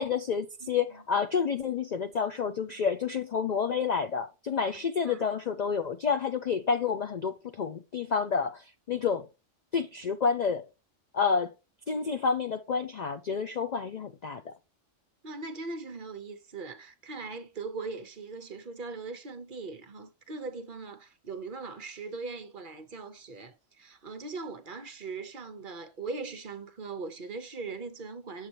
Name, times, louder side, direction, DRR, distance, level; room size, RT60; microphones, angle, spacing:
voice 1, 0.0-9.3 9.7-10.6 11.1-11.5 11.9-14.5, left 6 dB, 60° left, 0.4 m, -29 dB
voice 2, 15.2-28.5, right 4 dB, 50° right, 0.9 m, -40 dB
7.3 x 6.6 x 2.9 m
omnidirectional pair, 1.3 m